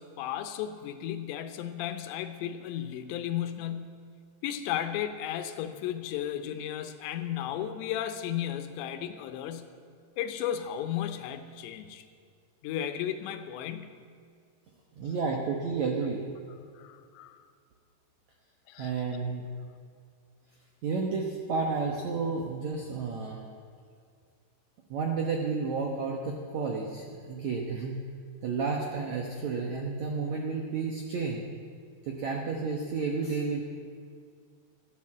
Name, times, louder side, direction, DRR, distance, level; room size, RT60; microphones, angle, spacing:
voice 1, 0.0-4.0 4.4-9.7 10.2-12.1 12.6-14.0 16.7-17.4 18.7-18.9, left 10 dB, 90° left, 9 dB, 3.1 m, -34 dB
voice 2, 15.0-16.2 18.8-19.4 20.8-23.5 24.9-28.1 28.4-31.4 32.0-33.6, right 4 dB, 80° right, 1 dB, 1.6 m, -31 dB
14.0 x 10.5 x 7.4 m, 2.2 s
omnidirectional pair, 4.9 m